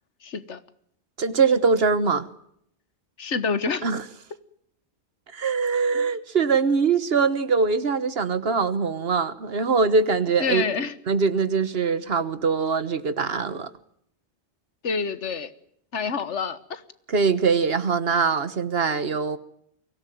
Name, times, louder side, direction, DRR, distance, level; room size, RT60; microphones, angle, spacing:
voice 1, 0.2-0.6 3.2-3.8 10.4-10.9 14.8-15.5 15.9-16.8, left 5 dB, 90° left, 1.6 m, -27 dB
voice 2, 1.2-2.3 3.8-4.0 5.3-10.6 11.1-13.7 17.1-19.4, right 5 dB, 60° right, 1.5 m, -22 dB
23.5 x 17.0 x 9.2 m
omnidirectional pair, 1.2 m